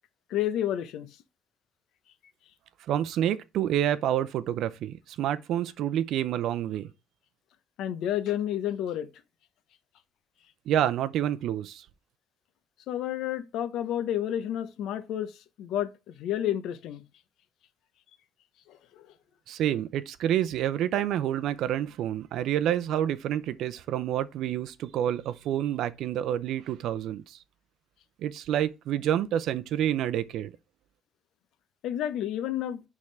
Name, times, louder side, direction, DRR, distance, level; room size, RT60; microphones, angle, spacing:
voice 1, 0.3-1.1 7.8-9.1 12.9-17.0 18.7-19.1 31.8-32.8, left 11 dB, 70° left, 0.8 m, -30 dB
voice 2, 2.9-6.9 10.7-11.8 19.5-27.4 28.2-30.5, right 11 dB, 65° right, 0.6 m, -28 dB
10.5 x 3.7 x 3.3 m
cardioid pair, 155°, 0 cm